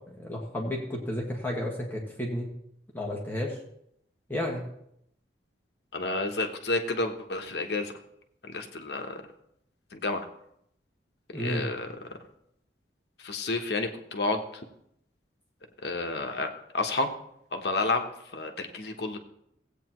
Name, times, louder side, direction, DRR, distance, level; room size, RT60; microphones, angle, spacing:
voice 1, 0.1-2.5 2.9-3.5 4.3-4.7 11.3-11.6, left 1 dB, 10° left, -2 dB, 1.7 m, -32 dB
voice 2, 5.9-8.0 8.4-9.2 9.9-10.3 11.3-12.2 13.2-14.6 15.8-17.1 17.5-18.1 18.3-19.2, left 3 dB, 65° left, 4 dB, 1.1 m, -30 dB
16.5 x 8.5 x 3.1 m, 0.75 s
head